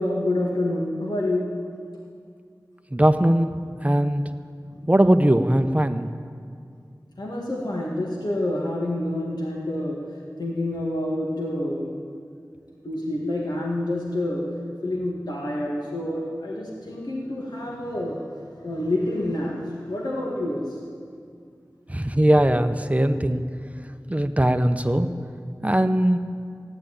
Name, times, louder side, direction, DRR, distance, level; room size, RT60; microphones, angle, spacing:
voice 1, 0.0-1.6 4.6-4.9 7.2-10.0 10.4-12.0 12.8-14.5 14.8-20.8, left 1 dB, 80° left, -3 dB, 2.1 m, -28 dB
voice 2, 2.9-3.5 3.8-4.2 4.9-6.1 21.9-23.4 24.1-25.1 25.6-26.2, right 1 dB, 20° right, 8 dB, 0.8 m, -20 dB
15.0 x 9.9 x 9.3 m, 2.2 s
wide cardioid pair, 60°, 7 cm